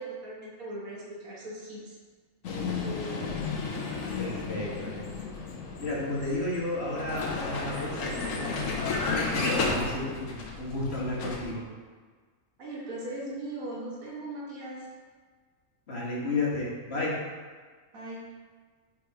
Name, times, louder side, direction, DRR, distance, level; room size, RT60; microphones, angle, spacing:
voice 1, 0.0-2.0 12.6-14.9 17.9-18.3, right 2 dB, 90° right, -4 dB, 1.9 m, -39 dB
Vehicle, 2.4-11.5, left 4 dB, 70° left, 1.2 m, -33 dB
voice 2, 4.2-5.1 5.8-11.6 15.9-17.3, left 2 dB, 50° left, -5 dB, 1.5 m, -32 dB
5.1 x 4.6 x 4.7 m, 1.5 s
omnidirectional pair, 1.4 m